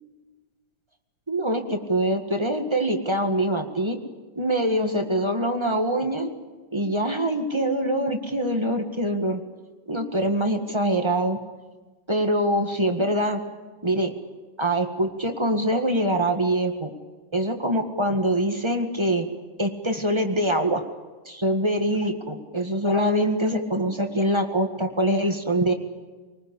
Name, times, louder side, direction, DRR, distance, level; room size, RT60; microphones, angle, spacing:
voice 1, 1.3-4.0 4.3-6.3 6.7-9.4 9.9-11.4 12.1-13.4 13.8-14.1 14.6-16.9 17.3-19.3 19.6-20.8 21.2-25.7, right 1 dB, 20° right, 4 dB, 0.8 m, -24 dB
26.0 x 19.5 x 8.5 m, 1.3 s
omnidirectional pair, 3.8 m